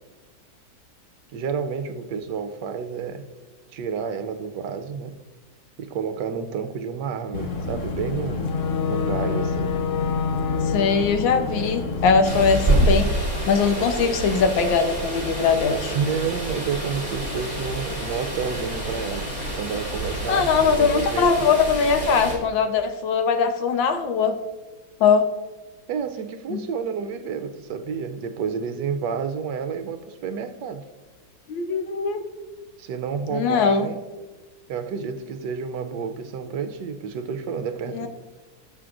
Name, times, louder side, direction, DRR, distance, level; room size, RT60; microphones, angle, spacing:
voice 1, 1.3-3.3 3.7-5.2 5.8-8.6 8.9-9.8 15.9-19.3 19.6-21.5 25.9-30.9 32.8-34.0 34.7-38.1, right 6 dB, 75° right, 1.2 m, -30 dB
Boat Water vehicle / Engine, 7.3-12.6, left 5 dB, 50° left, 1.1 m, -26 dB
voice 2, 10.7-13.1 13.5-15.9 20.3-24.4 25.0-25.2 26.5-26.6 31.5-32.2 33.3-33.9 37.9-38.1, left 5 dB, 80° left, 1.6 m, -21 dB
sound 1, 12.2-22.3, right 1 dB, 20° left, 3.2 m, -27 dB
18.0 x 6.5 x 2.5 m
omnidirectional pair, 2.1 m